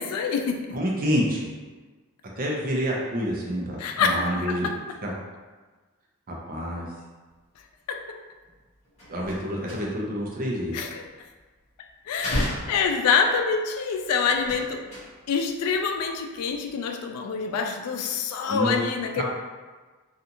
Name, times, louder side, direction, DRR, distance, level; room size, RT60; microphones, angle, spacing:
voice 1, 0.0-0.7 3.8-4.8 7.9-8.2 10.7-11.0 12.1-14.8 15.3-19.2, left 5 dB, 90° left, 5 dB, 0.3 m, -26 dB
voice 2, 0.7-1.5 2.4-4.7 5.0-5.1 6.3-6.9 9.1-10.8 18.5-18.8 19.2-19.3, equal, 40° right, -3 dB, 0.5 m, -28 dB
sound 1, 8.4-8.6 8.8-10.2 10.5-11.6 12.1-13.5 14.3-15.5 15.7-16.2 16.5-16.7, equal, 30° left, 0.8 m, -34 dB
2.5 x 2.4 x 2.8 m, 1.3 s
head